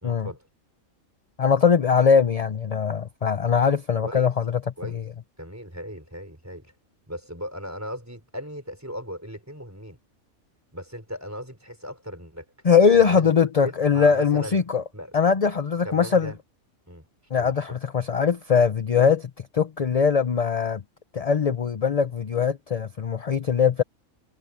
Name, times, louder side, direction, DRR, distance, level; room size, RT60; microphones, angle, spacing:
voice 1, 0.0-0.5 4.0-4.3 4.8-5.0 5.4-6.7 7.1-10.0 10.7-12.4 13.0-13.3 13.6-14.6 14.9-15.2 15.8-16.4 16.9-17.1 17.4-17.5, equal, 10° right, 4.4 m, -37 dB
voice 2, 1.4-4.6 4.9-5.0 12.6-14.8 15.1-16.3 17.3-20.8 21.1-23.8, left 6 dB, 40° left, 0.6 m, -21 dB
omnidirectional pair, 1.5 m